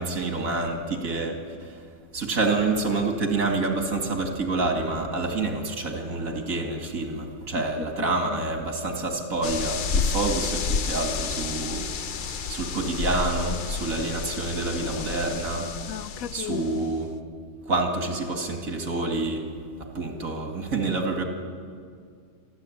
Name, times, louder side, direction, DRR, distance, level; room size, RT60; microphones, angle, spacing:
voice 1, 0.0-1.8 2.1-11.9 12.5-15.7 16.3-17.1 17.7-19.5 19.8-21.2, right 3 dB, 80° right, 3 dB, 2.7 m, -28 dB
voice 2, 7.8-8.4 15.9-16.9, left 10 dB, 80° left, 12 dB, 1.2 m, -36 dB
sound 1, 9.4-16.9, left 5 dB, 50° left, 0.7 m, -30 dB
26.5 x 12.0 x 8.8 m, 2.2 s
omnidirectional pair, 1.4 m